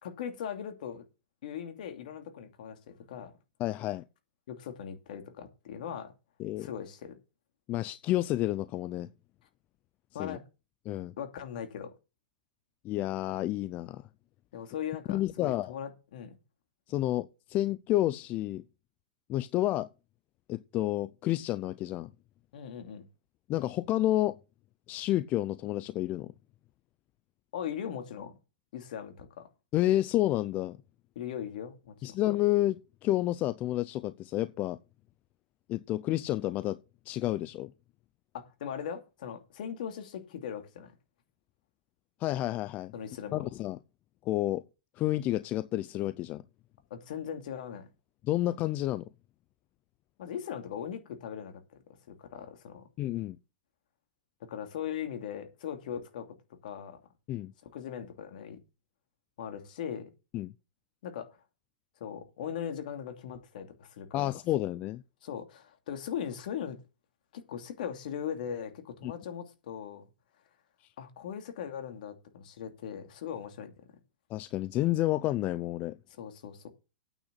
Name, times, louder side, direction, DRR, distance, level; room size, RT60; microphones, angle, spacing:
voice 1, 0.0-1.0 1.4-3.3 4.5-6.1 6.6-7.2 10.1-10.4 11.2-11.9 14.5-16.3 22.5-23.0 27.5-28.4 28.7-29.5 31.1-32.0 38.3-40.9 42.9-43.4 46.9-47.9 50.2-51.8 52.1-52.9 54.4-56.3 56.6-57.0 57.6-58.6 59.4-60.1 61.0-61.3 62.0-64.3 65.2-66.8 67.3-70.1 71.0-73.7 76.2-76.7, left 8 dB, 70° left, 2.7 m, -39 dB
voice 2, 3.6-4.0 6.4-6.7 7.7-9.1 10.2-10.4 10.9-11.1 12.8-14.1 15.1-15.7 16.9-18.6 19.3-19.9 20.5-22.1 23.5-24.4 24.9-26.3 29.7-30.8 32.0-34.8 35.7-37.7 42.2-42.9 43.3-43.8 44.2-44.6 45.0-46.4 48.2-49.0 53.0-53.4 57.3-57.5 60.3-60.5 64.1-65.0 69.0-69.1 74.3-76.0, left 15 dB, 35° left, 0.5 m, -30 dB
9.0 x 6.3 x 8.2 m
hypercardioid pair, 130°, 5 cm